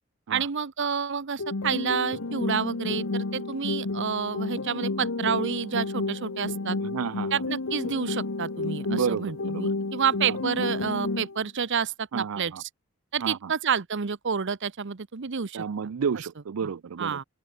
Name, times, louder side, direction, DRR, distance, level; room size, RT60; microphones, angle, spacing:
voice 1, 0.3-6.8 7.3-12.7 13.1-15.6 16.6-16.7 17.0-17.2, right 6 dB, 60° right, 0.8 m, -29 dB
sound 1, 1.4-11.4, left 3 dB, 75° left, 1.2 m, -31 dB
voice 2, 6.8-7.4 8.9-9.7 10.3-10.4 12.1-12.6 13.2-13.5 15.5-17.2, right 6 dB, 85° right, 0.5 m, -31 dB
open air
head